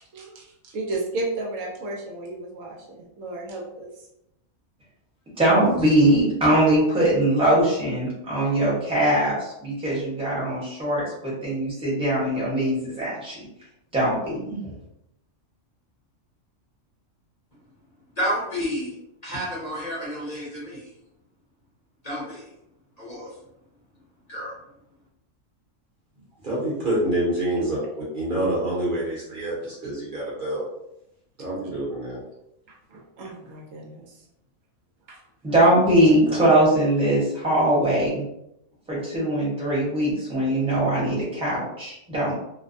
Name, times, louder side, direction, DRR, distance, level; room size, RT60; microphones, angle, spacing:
voice 1, 0.0-2.8 3.2-3.9 32.7-34.2 35.1-35.2, right 2 dB, 75° right, -1 dB, 1.0 m, -33 dB
voice 2, 5.4-13.4 13.9-14.6 35.4-38.3 38.9-42.3, right 1 dB, 5° right, -7 dB, 0.8 m, -21 dB
voice 3, 18.2-19.0 19.2-20.9 22.0-22.4 23.0-23.3 24.3-24.5, equal, 35° left, -8 dB, 0.7 m, -30 dB
voice 4, 26.4-30.6 31.4-32.2, right 1 dB, 45° right, -6 dB, 0.9 m, -27 dB
2.6 x 2.1 x 2.5 m, 0.83 s
omnidirectional pair, 1.4 m